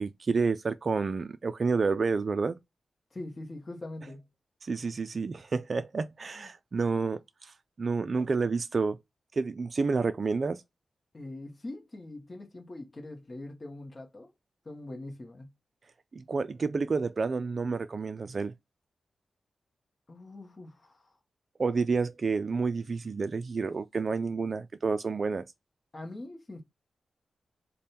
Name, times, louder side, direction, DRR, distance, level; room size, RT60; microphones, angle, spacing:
voice 1, 0.0-2.6 4.6-9.0 9.3-10.6 16.1-18.5 21.6-25.5, right 4 dB, 45° right, 0.3 m, -29 dB
voice 2, 3.1-4.3 6.4-6.5 11.1-14.3 14.6-15.5 20.1-21.1 25.9-26.6, left 2 dB, 30° left, 0.9 m, -43 dB
3.5 x 2.2 x 4.1 m
wide cardioid pair, 125°, 0 cm